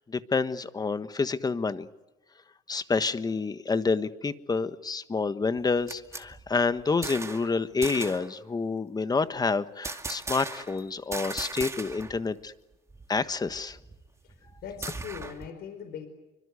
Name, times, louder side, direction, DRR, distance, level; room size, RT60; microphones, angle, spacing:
voice 1, 0.1-1.9 2.7-12.5 13.1-13.8, left 4 dB, 25° left, 12 dB, 1.4 m, -28 dB
sound 1, 5.6-7.5 7.8-8.3 9.8-10.8 11.1-12.2 12.5-12.6 12.9-15.5, right 3 dB, 15° right, 2.4 m, -38 dB
voice 2, 14.6-16.1, left 7 dB, 70° left, 7 dB, 4.6 m, -40 dB
27.5 x 25.0 x 8.4 m, 1.0 s
cardioid pair, 110°, 17 cm